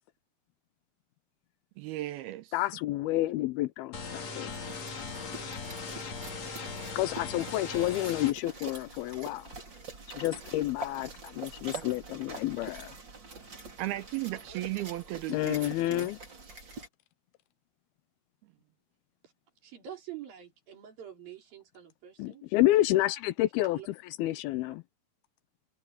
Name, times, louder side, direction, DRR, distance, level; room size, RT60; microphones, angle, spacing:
voice 1, 1.8-2.5 11.7-11.9 13.8-16.1, right 17 dB, 80° right, 2.6 m, -36 dB
voice 2, 2.5-4.5 6.9-9.5 10.1-13.0 15.3-16.2 22.2-23.8 24.2-24.8, left 16 dB, 80° left, 2.4 m, -29 dB
sound 1, 3.9-8.3, left 4 dB, 45° left, 4.1 m, -39 dB
sound 2, 4.5-16.9, right 3 dB, 30° right, 3.8 m, -45 dB
voice 3, 19.6-22.4 23.7-23.9, right 10 dB, 60° right, 5.6 m, -46 dB
omnidirectional pair, 4.6 m